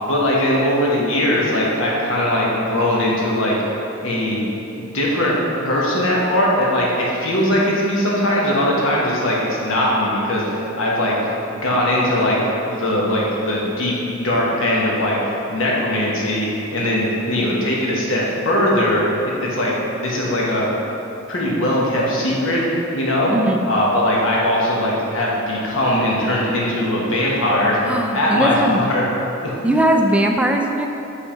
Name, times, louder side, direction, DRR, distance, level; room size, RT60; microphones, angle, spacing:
voice 1, 0.0-3.5 4.0-4.4 4.8-5.4 5.6-11.1 11.5-12.4 12.7-15.2 15.5-19.7 20.0-20.7 21.3-22.6 22.9-23.3 23.7-27.8 28.1-29.0 29.4-29.5, left 1 dB, 70° left, -4 dB, 1.2 m, -20 dB
voice 2, 17.2-17.6 23.3-23.6 27.8-28.8 29.6-30.9, right 1 dB, 5° right, 2 dB, 0.3 m, -19 dB
5.5 x 3.5 x 5.6 m, 2.9 s
head